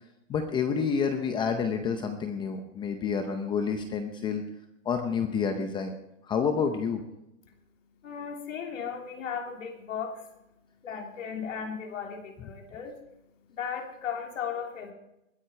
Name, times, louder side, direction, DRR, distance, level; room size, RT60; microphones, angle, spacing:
voice 1, 0.3-4.4 4.8-5.9 6.2-7.0, left 6 dB, 10° left, 7 dB, 0.7 m, -29 dB
voice 2, 7.4-14.9, left 7 dB, 75° left, 2 dB, 3.4 m, -37 dB
20.5 x 9.9 x 4.4 m, 0.86 s
hypercardioid pair, 150°, 38 cm